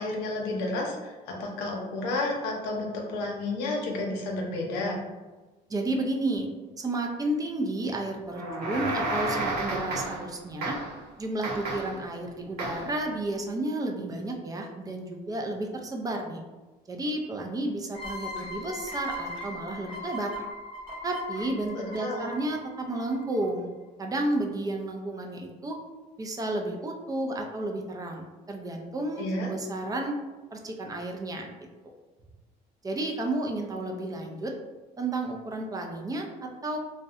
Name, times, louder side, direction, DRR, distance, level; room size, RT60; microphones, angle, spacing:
voice 1, 0.0-5.0 21.7-22.3 29.2-29.5, left 2 dB, 90° left, 0 dB, 0.6 m, -31 dB
voice 2, 5.7-6.5 6.8-10.8 11.2-16.4 16.9-20.3 21.0-23.7 24.0-25.8 26.2-30.2 30.5-31.5 32.8-34.5 35.0-36.8, right 2 dB, 20° right, 2 dB, 0.3 m, -32 dB
sound 1, 8.3-10.3 10.6-11.0 11.4-12.0 12.6-13.0, right 2 dB, 70° right, 0.6 m, -31 dB
sound 2, 17.9-23.4, left 1 dB, 30° left, 0.7 m, -39 dB
2.6 x 2.1 x 2.4 m, 1.2 s
cardioid pair, 110°, 17 cm